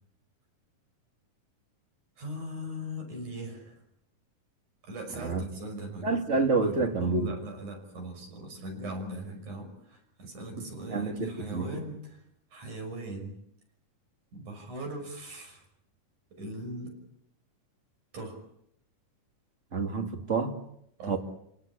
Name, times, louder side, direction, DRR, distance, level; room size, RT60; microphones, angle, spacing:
voice 1, 2.2-3.8 4.8-12.2 12.5-13.3 14.3-15.6 16.4-16.9 18.1-18.4 21.0-21.2, right 1 dB, 65° right, 7.4 m, -40 dB
voice 2, 6.0-7.3 10.6-11.7 19.7-20.6 21.1-21.2, right 4 dB, 25° right, 2.3 m, -28 dB
29.5 x 18.0 x 8.7 m
omnidirectional pair, 3.7 m